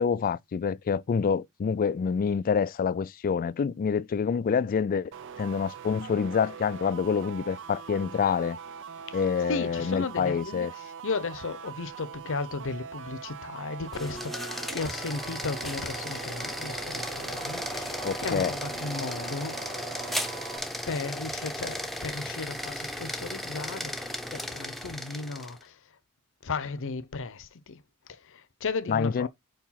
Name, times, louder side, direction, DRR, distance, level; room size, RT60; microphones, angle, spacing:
voice 1, 0.0-5.1 5.4-8.6 9.1-10.7 18.0-18.5 28.9-29.3, left 6 dB, 40° left, 0.3 m, -27 dB
sound 1, 5.1-20.6, right 7 dB, 60° right, 0.5 m, -42 dB
voice 2, 9.5-19.6 20.9-26.0 26.4-29.3, left 4 dB, 60° left, 0.7 m, -35 dB
sound 2, 13.8-25.6, equal, ahead, 0.7 m, -35 dB
5.1 x 4.7 x 5.7 m
head